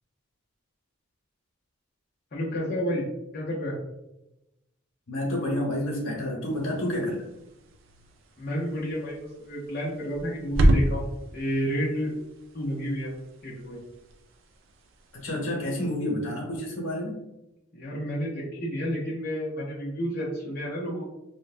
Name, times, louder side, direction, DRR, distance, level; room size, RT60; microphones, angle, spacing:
voice 1, 2.3-3.0 3.3-3.8 8.4-11.1 11.3-12.1 12.5-13.1 13.4-13.8 17.7-21.1, equal, 45° left, -6 dB, 0.6 m, -30 dB
voice 2, 5.1-7.2 15.2-17.2, left 1 dB, 80° left, -2 dB, 1.0 m, -29 dB
sound 1, 6.5-15.4, right 1 dB, 70° right, 0.4 m, -30 dB
3.1 x 2.1 x 2.4 m, 0.92 s
head